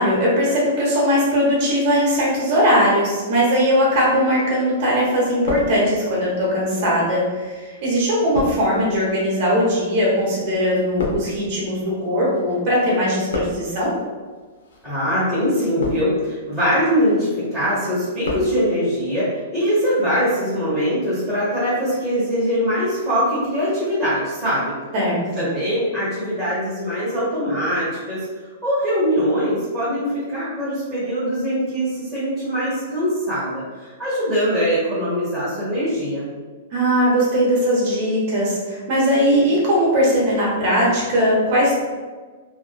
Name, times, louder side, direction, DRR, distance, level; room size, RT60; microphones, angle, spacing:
voice 1, 0.0-13.9 24.9-25.4 36.7-41.7, equal, 40° right, -4 dB, 1.0 m, -19 dB
sound 1, 4.3-4.9 5.2-6.2 6.9-12.6 12.8-13.9 14.6-14.9 15.5-16.3 16.8-17.2 17.6-18.5 18.8-18.9, left 2 dB, 85° left, 0.7 m, -31 dB
voice 2, 14.8-24.7 25.4-28.2 28.6-36.3, equal, ahead, -13 dB, 1.0 m, -22 dB
2.8 x 2.3 x 2.2 m, 1.4 s
hypercardioid pair, 160°, 0 cm